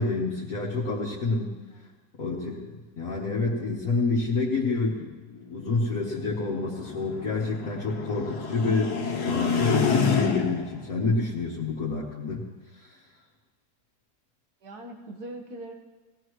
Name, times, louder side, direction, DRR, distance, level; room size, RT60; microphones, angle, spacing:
voice 1, 0.0-1.5 2.2-5.1 5.5-12.4 12.8-13.0, left 3 dB, 60° left, -5 dB, 2.0 m, -28 dB
voice 2, 1.7-2.0 14.6-15.7, right 1 dB, 75° right, 2 dB, 2.1 m, -41 dB
sound 1, 5.3-10.8, left 5 dB, 75° left, 1.8 m, -29 dB
20.0 x 16.5 x 3.2 m, 1.2 s
omnidirectional pair, 1.7 m